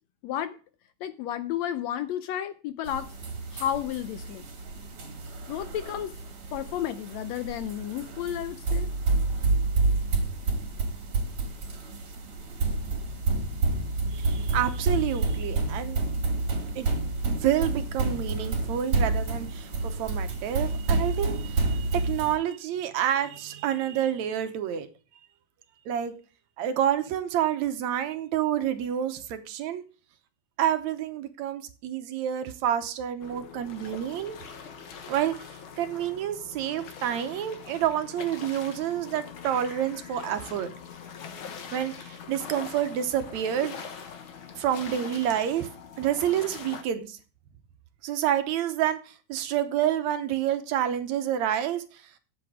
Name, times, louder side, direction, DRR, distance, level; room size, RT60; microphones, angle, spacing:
voice 1, 0.2-0.6 1.0-3.1 3.5-4.4 5.5-6.1 6.5-8.9, left 11 dB, 75° left, 1.7 m, -32 dB
sound 1, 2.8-22.3, right 3 dB, 50° right, 3.3 m, -29 dB
voice 2, 14.1-16.0 16.8-16.9 17.2-24.9 25.9-26.1 26.6-29.8 30.6-34.4 35.1-35.3 35.8-40.7 41.7-43.8 44.6-45.7 46.0-47.2 48.0-49.0 49.3-51.8, right 10 dB, 70° right, 2.1 m, -28 dB
sound 2, 33.2-46.8, left 6 dB, 55° left, 1.7 m, -43 dB
10.5 x 7.8 x 4.8 m
omnidirectional pair, 3.5 m